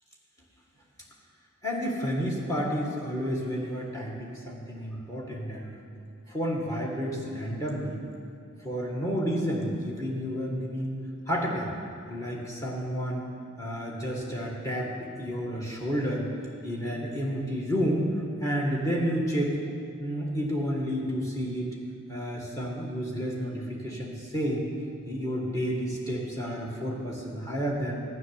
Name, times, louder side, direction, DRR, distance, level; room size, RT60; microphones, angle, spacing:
voice 1, 1.6-5.7 6.3-8.0 8.6-10.9 11.3-11.7 12.1-13.3 13.6-16.3 16.6-19.6 20.0-21.8 22.1-24.7 25.1-28.0, equal, 15° left, -2 dB, 1.8 m, -30 dB
12.5 x 6.1 x 9.6 m, 2.7 s
head